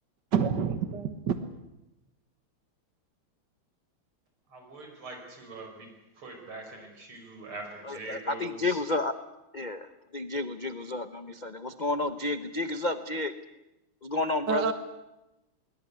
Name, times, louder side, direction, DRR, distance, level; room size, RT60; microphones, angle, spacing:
voice 1, 0.3-1.4 14.5-14.7, right 7 dB, 55° right, 9 dB, 1.8 m, -27 dB
voice 2, 4.5-8.8, right 3 dB, 75° right, 3 dB, 6.0 m, -43 dB
voice 3, 7.9-9.1 9.5-9.9 10.1-13.3 14.0-14.7, left 2 dB, 60° left, 11 dB, 0.4 m, -31 dB
21.0 x 20.5 x 9.7 m, 0.95 s
omnidirectional pair, 2.4 m